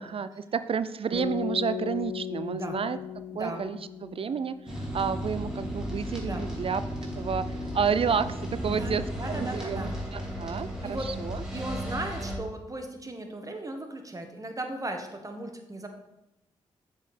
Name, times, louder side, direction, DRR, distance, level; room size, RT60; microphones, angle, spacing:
voice 1, 0.0-3.0 3.3-6.8 7.2-11.4, right 6 dB, 45° right, 14 dB, 0.4 m, -30 dB
sound 1, 1.1-5.3, left 8 dB, 70° right, 1.3 m, -37 dB
voice 2, 3.3-3.6 6.2-6.4 8.7-9.9 10.5-11.1 11.5-15.9, right 2 dB, 25° right, 4 dB, 1.3 m, -37 dB
sound 2, 4.7-12.4, equal, 5° right, 2.2 m, -34 dB
7.0 x 4.3 x 4.3 m, 0.90 s
supercardioid pair, 40°, 13 cm